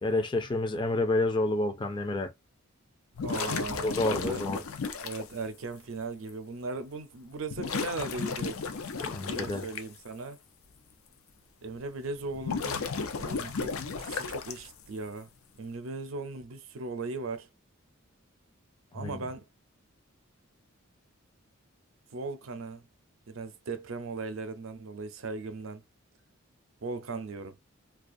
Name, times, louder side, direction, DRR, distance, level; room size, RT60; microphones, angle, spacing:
voice 1, 0.0-2.3 3.4-3.5 3.8-4.6 9.1-9.7 18.9-19.2, left 2 dB, 20° left, 0.4 m, -29 dB
sound 1, 3.1-5.3 6.3-6.4 7.5-9.8 12.2-14.8, left 5 dB, 85° left, 0.5 m, -34 dB
voice 2, 3.2-4.6 5.0-8.7 9.2-10.4 11.6-12.9 13.2-15.3 15.6-17.5 18.9-19.5 22.1-22.9 23.3-25.8 26.8-27.6, right 3 dB, 70° right, 0.5 m, -38 dB
2.4 x 2.3 x 2.5 m
head